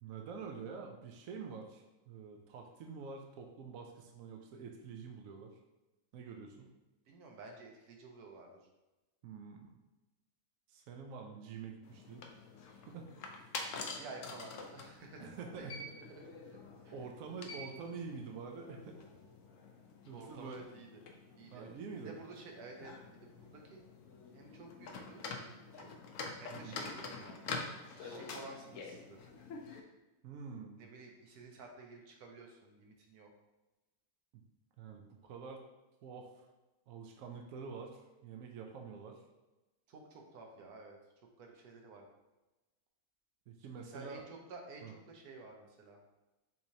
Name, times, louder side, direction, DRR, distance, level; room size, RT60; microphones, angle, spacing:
voice 1, 0.0-5.6 6.1-6.7 9.2-9.8 10.7-12.3 12.9-13.1 15.2-15.9 16.9-19.1 20.1-20.6 21.5-22.2 26.5-26.8 30.2-30.8 34.8-35.6 36.0-36.5 36.9-39.2 43.5-44.3 44.8-44.9, right 5 dB, 70° right, 2 dB, 1.0 m, -47 dB
voice 2, 7.1-8.6 13.7-15.3 15.6-17.4 20.1-21.0 21.4-21.7 22.0-23.8 24.3-25.9 26.4-27.4 27.9-29.2 30.8-33.3 39.9-42.1 43.7-46.0, right 3 dB, 90° right, 1 dB, 1.3 m, -52 dB
sound 1, 11.8-29.8, left 4 dB, 65° left, 0.9 m, -47 dB
5.9 x 3.1 x 2.8 m, 1.1 s
omnidirectional pair, 1.6 m